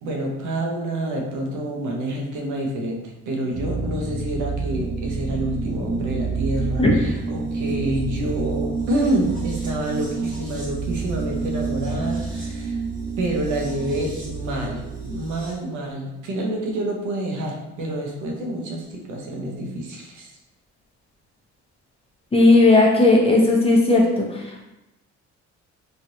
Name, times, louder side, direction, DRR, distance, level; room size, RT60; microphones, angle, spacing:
voice 1, 0.0-12.8 13.2-20.3, right 1 dB, 80° right, 0 dB, 0.7 m, -27 dB
sound 1, 3.5-15.5, right 4 dB, 25° right, 1.2 m, -29 dB
voice 2, 22.3-24.6, left 2 dB, 20° left, -2 dB, 0.7 m, -16 dB
3.1 x 2.5 x 2.6 m, 0.95 s
cardioid pair, 90°, 30 cm